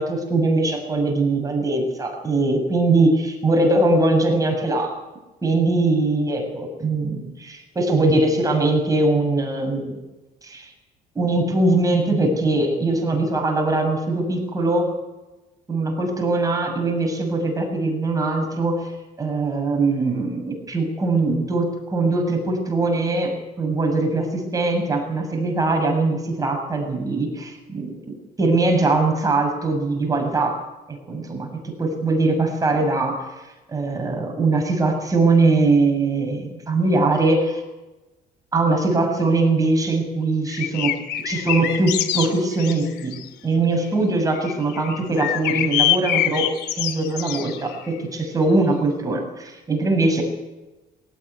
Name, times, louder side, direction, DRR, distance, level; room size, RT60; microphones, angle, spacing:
voice 1, 0.0-4.9 5.4-10.0 10.4-10.7 11.2-14.9 15.7-18.9 19.2-30.6 30.9-33.3 33.7-37.6 38.5-41.0 41.3-43.2 43.4-46.5 46.8-50.2, right 2 dB, 20° right, 3 dB, 7.3 m, -21 dB
sound 1, 40.5-43.3 44.3-47.9, left 12 dB, 85° left, 2.5 m, -25 dB
19.5 x 18.5 x 9.7 m, 1.1 s
cardioid pair, 110°, 17 cm